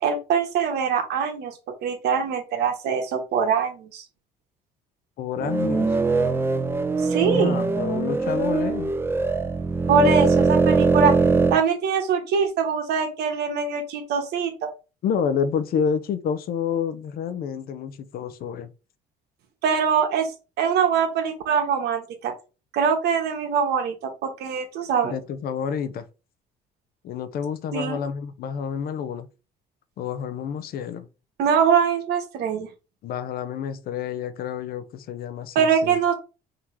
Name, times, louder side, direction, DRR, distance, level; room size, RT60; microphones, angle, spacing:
voice 1, 0.0-4.0 7.0-7.6 9.9-11.1 11.5-14.7 19.6-20.3 20.6-22.3 22.7-25.1 27.7-28.0 31.4-32.7 35.5-36.1, right 6 dB, 75° right, 1.2 m, -23 dB
voice 2, 5.2-5.9 7.2-8.9 15.0-18.7 25.0-26.1 27.0-29.3 30.0-31.1 33.0-36.0, left 7 dB, 65° left, 0.6 m, -29 dB
sound 1, 5.4-11.6, right 4 dB, 15° right, 0.5 m, -22 dB
3.7 x 2.9 x 4.6 m
cardioid pair, 110°, 17 cm